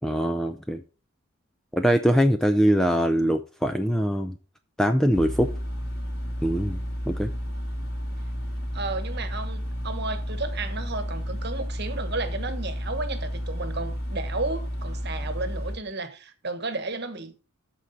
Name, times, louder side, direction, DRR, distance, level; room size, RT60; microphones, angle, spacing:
voice 1, 0.0-0.8 1.7-4.3 4.8-5.5 6.4-6.8 7.1-7.3, equal, ahead, 0.5 m, -22 dB
sound 1, 5.1-15.8, equal, 65° left, 3.2 m, -32 dB
voice 2, 8.7-17.5, right 3 dB, 45° right, 1.3 m, -33 dB
13.5 x 4.8 x 4.1 m
head